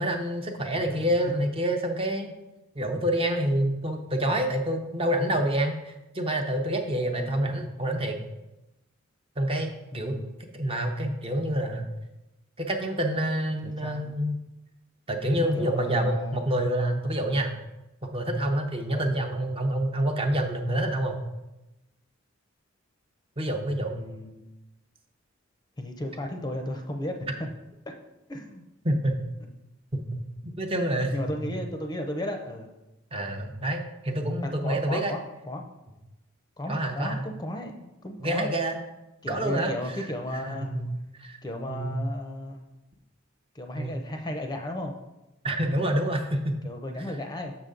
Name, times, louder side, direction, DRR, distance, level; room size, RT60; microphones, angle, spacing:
voice 1, 0.0-2.3 2.7-8.2 9.4-10.2 10.5-11.9 12.6-14.4 15.1-17.5 18.0-21.2 23.4-24.0 28.8-29.2 29.9-31.1 33.1-35.1 36.7-37.3 38.2-38.8 39.3-40.0 40.3-41.4 41.7-42.0 43.8-43.9 45.4-46.5, right 1 dB, 30° right, 3 dB, 0.7 m, -27 dB
voice 2, 7.0-7.7 9.9-10.3 13.6-14.0 15.3-16.4 18.9-19.1 23.8-24.5 25.8-27.2 27.9-28.0 28.3-28.6 31.1-32.7 34.4-35.7 36.6-38.5 39.2-40.7 41.4-42.7 43.5-45.0 46.6-47.6, left 1 dB, 20° left, 4 dB, 0.6 m, -35 dB
6.7 x 6.3 x 3.8 m, 0.98 s
head